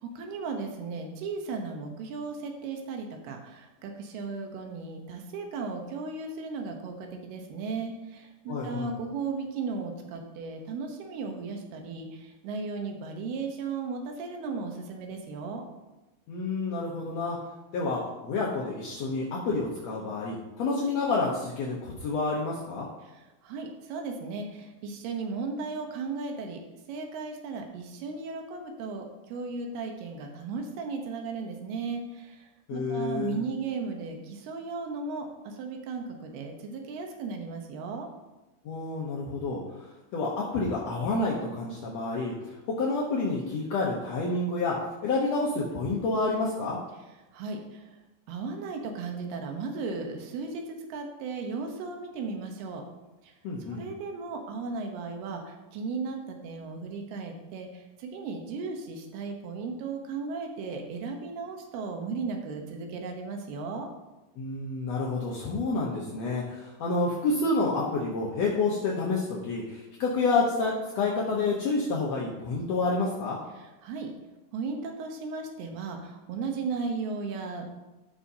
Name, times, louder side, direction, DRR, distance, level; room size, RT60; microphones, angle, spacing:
voice 1, 0.0-15.6 23.0-26.6 26.9-38.1 47.3-48.0 48.3-52.8 53.2-53.3 53.6-63.9 73.6-74.1 74.5-77.7, right 4 dB, 90° right, 3 dB, 3.0 m, -36 dB
voice 2, 8.5-8.9 16.3-17.4 17.7-22.9 32.7-33.4 38.6-44.8 45.0-46.8 53.4-53.8 64.4-73.4, left 3 dB, 70° left, -4 dB, 1.6 m, -29 dB
14.0 x 6.1 x 2.8 m, 1.0 s
omnidirectional pair, 4.4 m